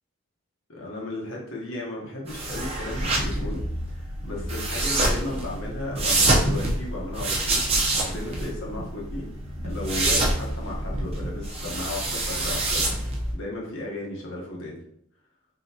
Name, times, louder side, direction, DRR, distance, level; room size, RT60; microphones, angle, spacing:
voice 1, 0.7-9.3 9.6-13.0 13.3-14.8, left 1 dB, 70° left, -3 dB, 1.0 m, -35 dB
sound 1, 2.3-13.3, right 2 dB, 25° right, 0.5 m, -26 dB
3.8 x 3.2 x 2.8 m, 0.70 s
head